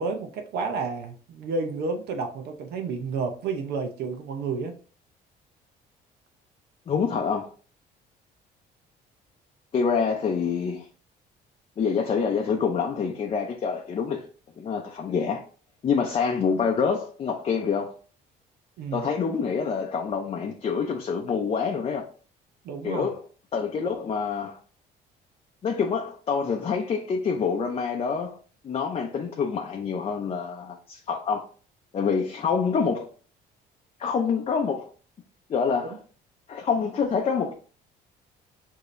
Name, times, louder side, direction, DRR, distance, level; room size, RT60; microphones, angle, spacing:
voice 1, 0.0-4.7 18.8-19.0 22.6-23.1, right 4 dB, 70° right, 0.8 m, -30 dB
voice 2, 6.9-7.5 9.7-10.9 11.8-14.3 14.6-15.4 15.8-17.9 18.9-22.1 22.8-23.2 23.5-24.6 25.6-28.4 28.6-31.5 31.9-33.1 34.0-34.9 35.5-36.0 36.5-37.5, left 6 dB, 35° left, 0.6 m, -26 dB
4.9 x 2.8 x 2.5 m
cardioid pair, 110°, 17 cm